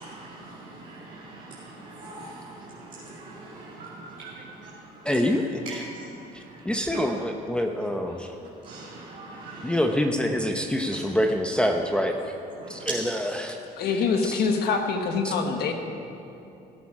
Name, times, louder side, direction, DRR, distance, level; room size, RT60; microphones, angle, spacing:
voice 1, 0.0-5.1 5.6-6.0 6.3-6.6 6.9-7.0 8.6-9.8 12.6-12.9, right 3 dB, 50° right, -6 dB, 2.2 m, -42 dB
voice 2, 5.0-5.8 6.3-8.3 9.6-12.3 12.7-13.6 14.2-14.4 15.2-15.3, equal, 5° left, 3 dB, 0.7 m, -26 dB
voice 3, 13.8-15.7, left 5 dB, 70° left, 5 dB, 1.3 m, -25 dB
17.0 x 8.4 x 4.8 m, 2.9 s
cardioid pair, 110°, 17 cm